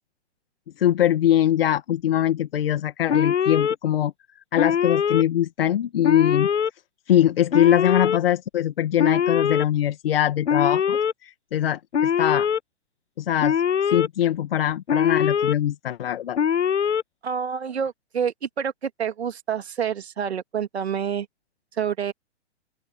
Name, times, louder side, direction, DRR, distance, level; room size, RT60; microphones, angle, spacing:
voice 1, 0.8-4.1 4.5-6.5 7.1-12.5 13.2-16.4, left 11 dB, 55° left, 2.2 m, -22 dB
Alarm, 3.1-3.8 4.6-5.2 6.0-6.7 7.5-8.2 9.0-9.7 10.5-11.1 11.9-12.6 13.4-14.1 14.9-15.5 16.4-17.0, left 7 dB, 80° left, 0.7 m, -22 dB
voice 2, 17.2-21.3 21.8-22.1, right 7 dB, 65° right, 2.9 m, -28 dB
open air
figure-of-eight pair, 120°, 34 cm